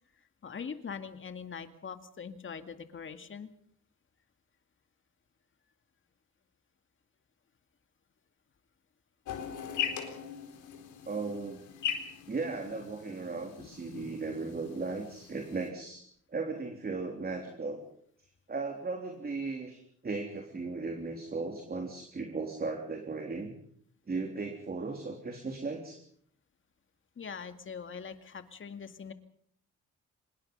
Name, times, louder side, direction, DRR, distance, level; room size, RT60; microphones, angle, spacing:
voice 1, 0.4-3.5 27.2-29.1, left 6 dB, 40° left, 8 dB, 2.2 m, -42 dB
sound 1, 9.2-15.7, left 8 dB, 80° left, 4.3 m, -40 dB
voice 2, 11.1-11.6 12.3-16.0 16.3-17.8 18.5-23.5 24.1-26.0, right 3 dB, 30° right, 3 dB, 3.7 m, -36 dB
25.5 x 21.0 x 5.5 m, 0.65 s
cardioid pair, 90°, 30 cm